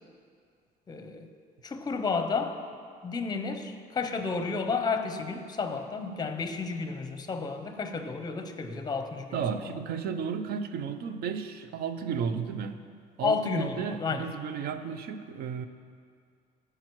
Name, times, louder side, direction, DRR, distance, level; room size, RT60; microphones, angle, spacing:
voice 1, 0.9-1.3 1.6-2.6 3.0-9.4 13.2-14.3, left 4 dB, 25° left, 7 dB, 0.6 m, -31 dB
voice 2, 9.3-12.8 13.2-15.7, right 6 dB, 65° right, 10 dB, 0.5 m, -33 dB
14.0 x 4.8 x 3.1 m, 2.2 s
cardioid pair, 110°, 17 cm